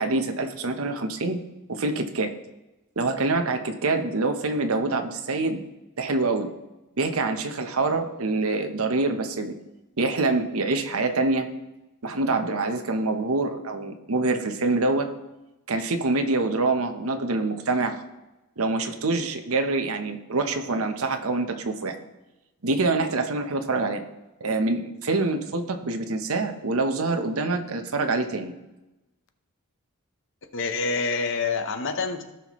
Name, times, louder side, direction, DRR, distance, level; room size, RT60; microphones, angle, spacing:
voice 1, 0.0-1.4 1.7-2.3 3.0-5.6 6.0-6.5 7.0-9.5 10.0-11.5 12.0-15.1 15.7-18.0 18.6-22.0 22.6-24.0 24.4-28.5, right 3 dB, 75° right, 6 dB, 0.9 m, -25 dB
voice 2, 30.5-32.2, left 4 dB, 60° left, 8 dB, 0.9 m, -27 dB
16.5 x 5.8 x 3.1 m, 1.0 s
head